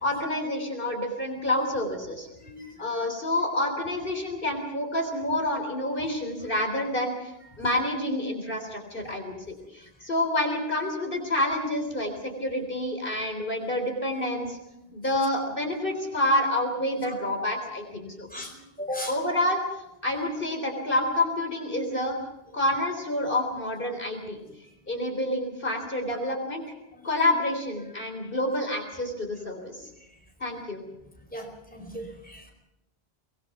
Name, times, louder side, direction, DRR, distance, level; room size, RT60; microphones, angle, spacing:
voice 1, 0.0-2.3 2.8-14.6 14.9-18.3 19.1-19.6 20.0-22.2 22.5-24.4 24.9-26.6 27.0-29.9 30.4-30.8, left 1 dB, 60° left, 4 dB, 3.8 m, -28 dB
voice 2, 2.4-2.9 16.1-16.2 17.0-17.1 18.3-19.2 27.0-27.1 31.3-32.5, left 1 dB, 10° left, 1 dB, 4.6 m, -37 dB
24.0 x 20.0 x 6.0 m, 0.89 s
omnidirectional pair, 1.0 m